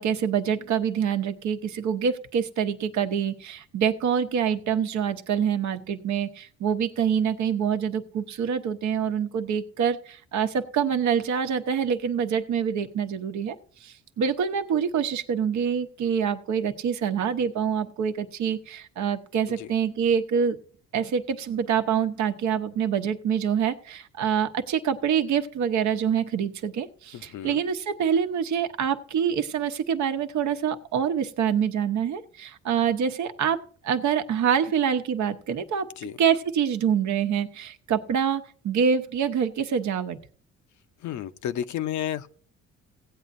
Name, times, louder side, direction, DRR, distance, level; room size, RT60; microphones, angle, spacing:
voice 1, 0.0-13.6 13.8-20.6 20.9-35.9 36.2-40.2, right 7 dB, 70° right, 1.0 m, -26 dB
voice 2, 27.1-27.6 36.0-36.2 41.0-42.3, left 10 dB, 70° left, 0.7 m, -32 dB
16.5 x 8.4 x 2.6 m
cardioid pair, 90°, 30 cm